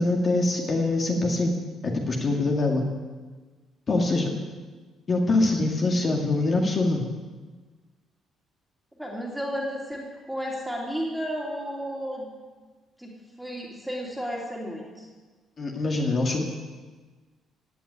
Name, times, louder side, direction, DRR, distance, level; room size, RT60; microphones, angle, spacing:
voice 1, 0.0-1.5 1.8-2.9 3.9-4.3 5.1-7.0 15.6-16.4, left 2 dB, 35° left, 1 dB, 2.0 m, -24 dB
voice 2, 9.0-12.3 13.0-15.1, equal, ahead, -2 dB, 3.0 m, -33 dB
16.5 x 8.5 x 9.5 m, 1.4 s
cardioid pair, 145°, 0 cm